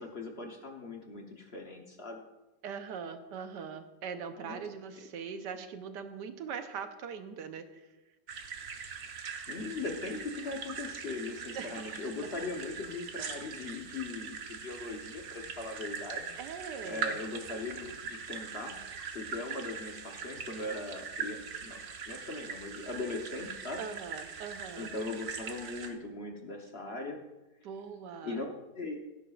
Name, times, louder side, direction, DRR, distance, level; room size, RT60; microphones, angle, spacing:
voice 1, 0.0-2.2 4.4-4.7 9.1-9.2 9.5-16.3 16.8-18.8 19.1-21.8 22.1-23.8 24.8-27.2 28.2-28.9, left 3 dB, 45° left, 2 dB, 1.0 m, -39 dB
voice 2, 2.6-7.9 11.5-12.0 16.4-17.2 23.8-24.9 27.6-28.4, right 6 dB, 75° right, 8 dB, 1.4 m, -41 dB
sound 1, 8.3-25.9, right 6 dB, 55° right, 1.2 m, -42 dB
17.0 x 9.9 x 2.4 m, 1.1 s
omnidirectional pair, 1.9 m